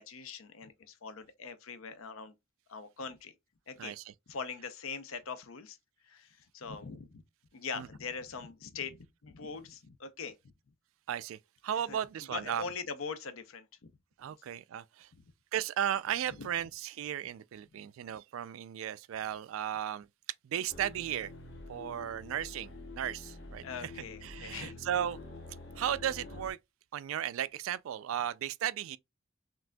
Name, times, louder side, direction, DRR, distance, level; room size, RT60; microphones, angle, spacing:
voice 1, 0.0-2.3 2.7-3.3 3.7-4.0 4.3-5.8 6.0-7.2 7.5-10.5 11.7-13.9 15.1-15.2 16.3-16.5 17.7-17.8 20.5-20.7 23.6-24.8, left 5 dB, 80° left, 0.6 m, -42 dB
voice 2, 11.1-11.4 11.6-12.6 14.2-15.1 15.5-20.1 20.4-21.3 21.7-23.9 24.2-25.2 25.8-26.6 26.9-29.0, right 10 dB, 75° right, 0.3 m, -35 dB
sound 1, 20.7-26.5, left 2 dB, 60° left, 0.9 m, -47 dB
5.8 x 2.5 x 2.2 m
head